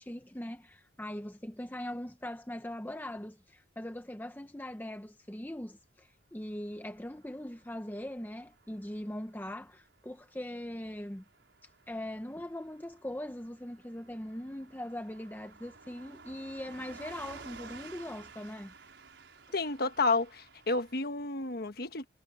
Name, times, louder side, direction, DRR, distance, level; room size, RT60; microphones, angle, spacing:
voice 1, 0.0-11.2 11.9-18.7, left 1 dB, 10° left, 0.9 m, -41 dB
Car passing by / Truck, 6.6-21.0, right 4 dB, 85° right, 5.5 m, -54 dB
voice 2, 19.5-22.1, left 3 dB, 55° left, 1.4 m, -31 dB
head